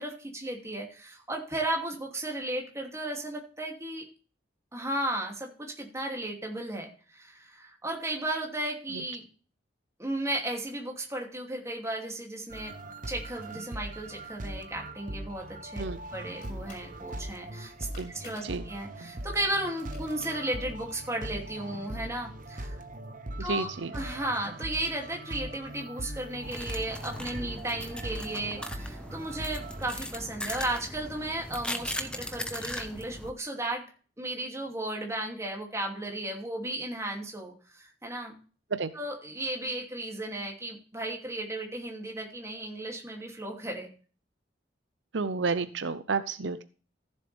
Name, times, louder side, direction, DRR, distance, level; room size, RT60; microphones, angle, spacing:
voice 1, 0.0-4.1 4.7-9.2 10.0-12.7 13.1-15.8 16.1-17.9 18.1-22.8 23.4-33.8 34.2-38.3 38.9-43.9, right 1 dB, 15° right, 1 dB, 2.7 m, -35 dB
sound 1, 12.5-29.9, right 1 dB, 45° right, 0.9 m, -40 dB
sound 2, 15.4-21.0, left 2 dB, 45° left, 5.1 m, -55 dB
voice 2, 23.4-23.9 38.7-38.9 45.1-46.6, right 4 dB, 80° right, 12 dB, 0.7 m, -31 dB
sound 3, 26.4-33.3, left 1 dB, 5° left, 1.0 m, -38 dB
14.5 x 7.4 x 3.4 m, 0.38 s
head